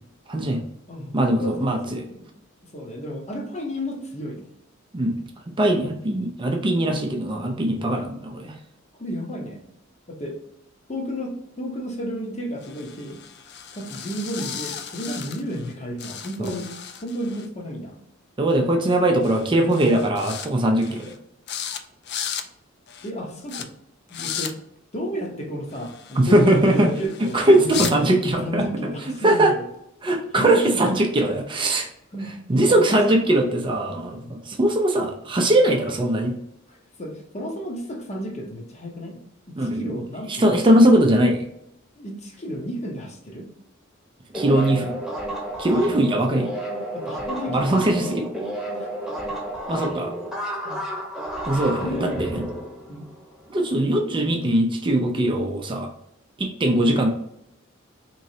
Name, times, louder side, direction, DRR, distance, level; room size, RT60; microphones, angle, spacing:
voice 1, 0.3-0.6 1.1-2.0 4.9-8.5 18.4-21.2 26.2-26.9 27.3-28.6 29.2-29.5 30.0-31.9 32.5-36.3 39.6-40.0 40.3-41.4 44.3-45.0 45.6-46.5 47.5-48.2 49.7-50.1 51.5-52.4 53.5-55.9 56.4-57.1, right 1 dB, 25° right, 2 dB, 0.5 m, -20 dB
voice 2, 0.9-2.3 2.6-4.4 7.7-8.5 9.0-9.6 10.1-10.4 10.9-13.2 13.7-16.7 17.0-18.0 20.8-21.0 23.0-23.7 24.1-24.5 24.9-28.1 28.4-29.6 30.3-30.9 32.1-33.0 34.1-34.3 36.7-39.2 39.5-40.5 40.8-41.0 42.0-43.5 46.0-46.1 46.9-48.3 48.7-48.9 50.6-50.8 51.8-52.3 52.9-53.1, equal, 35° left, 1 dB, 0.8 m, -32 dB
sound 1, 12.6-15.7 16.0-17.5 18.8-19.0 19.2-19.5 19.7-20.5 20.8-21.2 21.5-21.8 22.0-22.5 22.9-23.1 23.5-23.6 24.1-24.5 25.7-27.9, left 8 dB, 55° left, 0.4 m, -35 dB
sound 2, 44.3-53.5, right 1 dB, 5° right, 0.9 m, -31 dB
3.7 x 3.1 x 2.7 m, 0.77 s
head